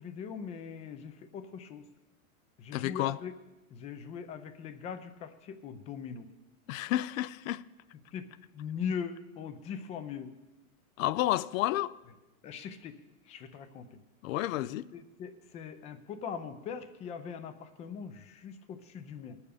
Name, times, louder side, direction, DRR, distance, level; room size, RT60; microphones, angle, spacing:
voice 1, 0.0-1.8 2.6-3.4 3.7-6.3 8.1-10.3 12.4-13.0 13.3-14.0 14.9-19.4, left 7 dB, 15° left, 0.4 m, -41 dB
voice 2, 2.7-3.2 6.7-7.6 11.0-12.0 14.2-14.9, left 15 dB, 65° left, 0.5 m, -30 dB
20.0 x 7.1 x 5.0 m
supercardioid pair, 145°, 43 cm